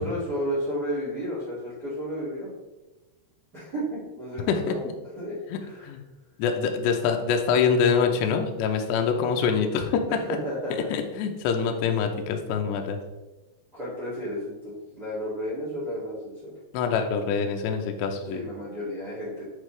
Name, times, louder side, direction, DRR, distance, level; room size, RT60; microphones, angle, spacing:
voice 1, 0.0-2.5 3.5-4.9 5.2-5.3 5.6-5.9 10.1-11.0 13.7-16.5 18.3-19.4, equal, 40° right, -7 dB, 1.4 m, -32 dB
voice 2, 4.5-4.9 5.5-6.0 6.4-10.2 10.9-13.0 16.7-18.4, left 6 dB, 80° left, 4 dB, 2.6 m, -25 dB
9.9 x 4.2 x 3.2 m, 1.1 s
omnidirectional pair, 5.7 m